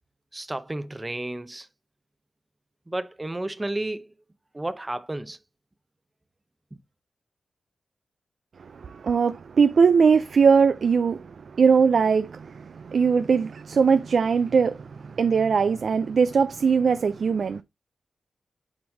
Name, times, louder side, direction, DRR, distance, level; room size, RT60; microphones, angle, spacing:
voice 1, 0.3-1.7 2.9-4.1 4.5-5.4 6.7-6.8, right 1 dB, 15° right, 0.7 m, -32 dB
voice 2, 8.6-17.6, right 5 dB, 60° right, 0.4 m, -21 dB
7.9 x 5.3 x 2.7 m
wide cardioid pair, 110°, 0 cm